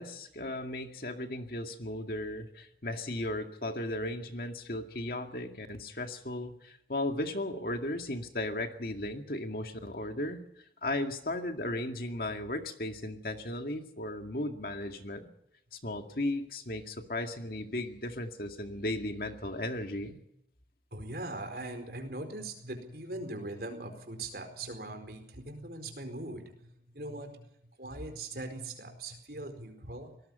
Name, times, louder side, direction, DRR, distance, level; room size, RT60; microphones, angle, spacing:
voice 1, 0.0-10.4 10.8-15.3 15.7-20.2, left 1 dB, 55° left, 5 dB, 2.2 m, -36 dB
voice 2, 20.9-27.5 27.8-30.2, right 2 dB, 55° right, 7 dB, 4.6 m, -41 dB
25.0 x 19.0 x 5.6 m, 0.78 s
head